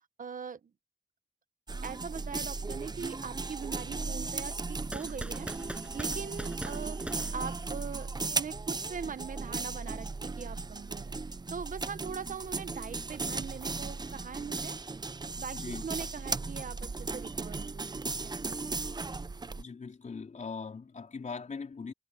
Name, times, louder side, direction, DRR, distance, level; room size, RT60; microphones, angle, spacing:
voice 1, 0.2-0.6 1.8-7.0 7.3-11.1 11.5-14.8 15.4-18.3, right 6 dB, 80° right, 0.9 m, -41 dB
sound 1, 1.7-19.6, right 3 dB, 30° right, 0.6 m, -36 dB
sound 2, 4.9-8.1, right 1 dB, 10° right, 6.5 m, -43 dB
voice 2, 15.5-15.9 19.6-21.9, left 5 dB, 65° left, 4.2 m, -40 dB
wide cardioid pair, 110°, 14 cm